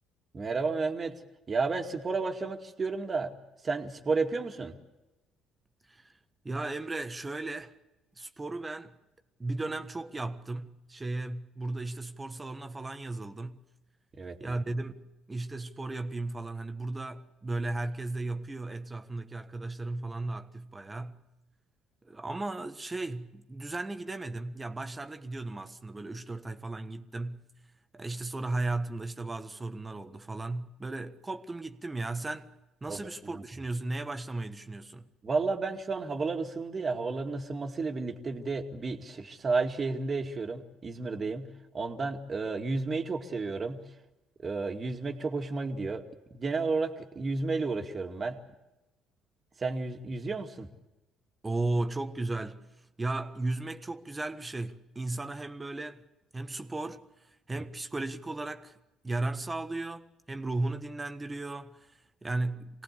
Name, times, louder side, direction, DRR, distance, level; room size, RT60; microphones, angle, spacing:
voice 1, 0.3-1.2 1.5-3.4 3.6-4.8 14.2-14.6 32.9-33.4 35.2-44.0 44.4-46.0 46.3-48.4 49.6-50.7, right 4 dB, 35° right, 2.3 m, -32 dB
voice 2, 6.4-7.7 8.2-9.0 9.4-13.6 14.4-21.2 22.0-27.4 27.9-32.5 32.8-35.1 51.4-52.7 53.0-56.0 56.3-57.0 57.5-58.8 59.0-62.8, right 2 dB, 20° right, 1.4 m, -35 dB
25.0 x 18.0 x 8.3 m
hypercardioid pair, 60°, 0 cm